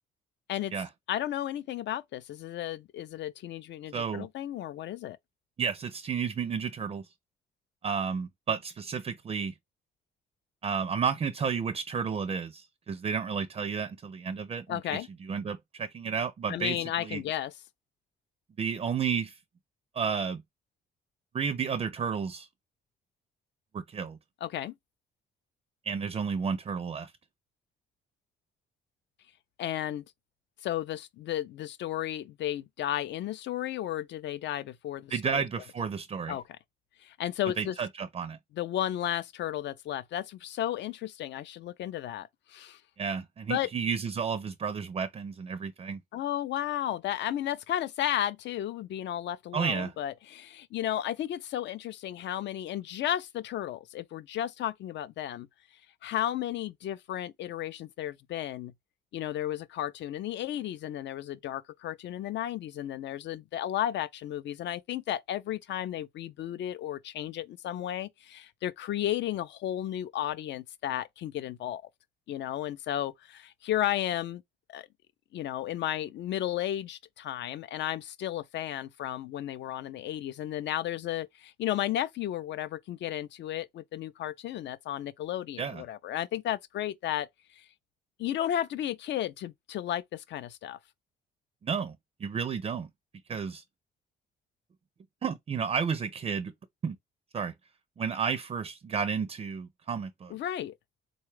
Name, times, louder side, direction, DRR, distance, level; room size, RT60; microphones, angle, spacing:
voice 1, 1.1-5.2 14.7-15.1 16.5-17.5 24.4-24.7 29.6-30.0 30.6-35.4 36.3-36.4 37.0-37.7 38.5-42.8 43.5-43.7 46.1-55.5 56.0-58.7 59.1-71.8 72.3-74.4 74.7-74.9 75.3-87.3 87.6-87.7 88.2-90.8 100.3-100.7, left 12 dB, 65° left, 0.4 m, -33 dB
voice 2, 3.9-4.3 5.6-7.0 7.8-9.5 10.6-17.2 18.6-19.4 20.0-20.4 21.3-22.5 23.7-24.2 25.8-27.1 35.1-36.4 37.6-38.4 43.0-46.0 49.5-49.9 85.6-85.8 91.6-92.0 92.2-92.9 93.3-93.6 95.2-96.5 96.8-97.0 97.3-97.5 98.0-100.3, right 6 dB, 30° right, 0.4 m, -32 dB
3.7 x 2.3 x 3.1 m
cardioid pair, 90°, 20 cm